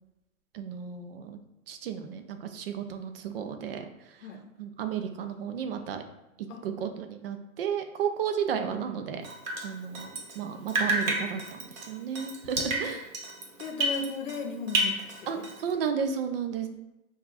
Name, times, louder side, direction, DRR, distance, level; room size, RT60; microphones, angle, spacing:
voice 1, 0.5-1.4 1.7-4.3 4.6-6.0 6.4-9.2 9.6-13.1 15.3-16.7, right 7 dB, 45° right, 7 dB, 0.4 m, -33 dB
Drip, 9.2-10.4 10.7-14.4 14.7-15.7, right 1 dB, 70° right, 0.9 m, -31 dB
voice 2, 13.6-15.4, left 3 dB, 60° left, 4 dB, 0.7 m, -36 dB
5.3 x 2.4 x 2.5 m, 0.96 s
hypercardioid pair, 125°, 42 cm